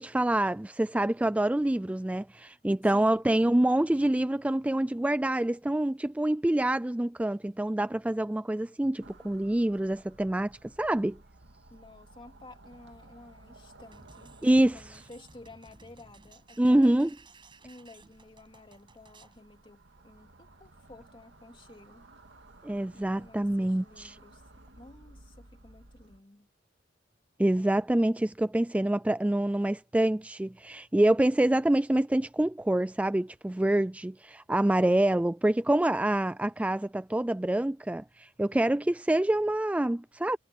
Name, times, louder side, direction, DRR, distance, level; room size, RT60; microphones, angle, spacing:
voice 1, 0.0-11.2 14.4-14.8 16.6-17.1 22.6-24.2 27.4-40.4, right 1 dB, 5° right, 0.3 m, -26 dB
sound 1, 9.0-26.2, right 2 dB, 80° right, 2.2 m, -56 dB
voice 2, 11.7-14.4 14.7-17.1 17.6-22.1 22.9-24.4 24.8-26.5, left 2 dB, 30° left, 2.5 m, -53 dB
sound 2, 13.9-19.4, right 3 dB, 25° right, 6.5 m, -57 dB
head